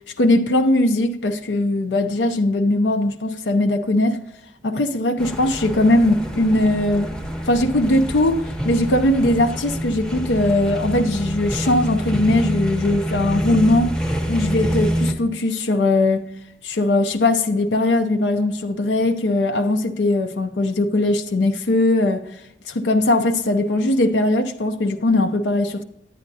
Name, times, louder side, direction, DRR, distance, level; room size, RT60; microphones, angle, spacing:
voice 1, 0.2-4.2 4.6-7.1 7.5-13.9 14.3-16.2 16.6-22.3 22.7-25.8, left 2 dB, 80° left, 0.6 m, -20 dB
sound 1, 5.2-15.1, equal, 5° left, 0.7 m, -26 dB
10.0 x 9.2 x 2.7 m
head